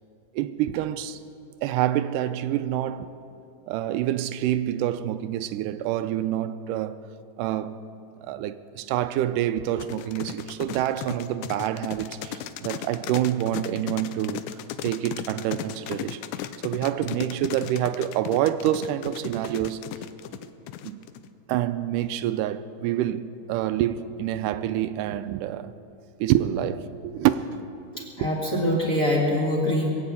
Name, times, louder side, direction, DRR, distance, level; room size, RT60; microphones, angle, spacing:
voice 1, 0.3-1.2 1.6-3.1 3.7-7.0 7.4-7.8 8.2-14.4 14.8-16.2 16.6-19.8 20.8-21.1 21.5-25.7 26.2-27.5 28.0-28.3, right 12 dB, 85° right, 2.1 m, -27 dB
sound 1, 9.8-21.3, left 12 dB, 85° left, 2.1 m, -36 dB
voice 2, 28.0-29.9, left 1 dB, 30° left, 1.7 m, -24 dB
21.5 x 7.8 x 8.4 m
omnidirectional pair, 3.7 m